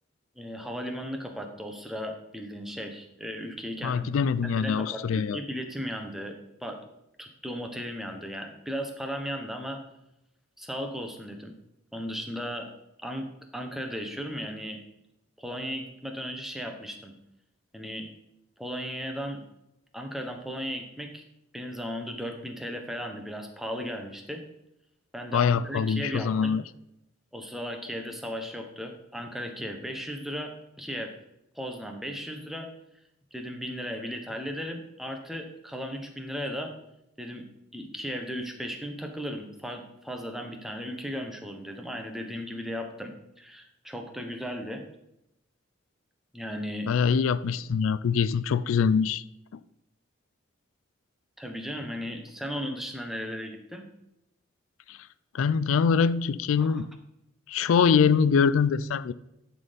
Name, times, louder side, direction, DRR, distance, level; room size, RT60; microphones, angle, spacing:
voice 1, 0.4-4.2 4.4-6.8 7.2-9.8 10.6-11.5 11.9-12.7 13.0-13.3 13.5-14.8 15.4-17.1 17.7-18.1 18.6-19.4 19.9-21.2 21.5-24.4 25.1-26.6 27.3-30.5 30.8-31.1 31.5-32.7 33.3-36.7 37.2-37.4 37.7-44.8 46.3-46.9 51.4-53.8 56.6-56.8, equal, ahead, 0.9 m, -36 dB
voice 2, 3.8-5.4 25.3-26.6 46.9-49.2 54.9-55.0 55.3-56.9 57.5-59.1, left 6 dB, 90° left, 0.4 m, -24 dB
11.0 x 4.3 x 5.1 m
head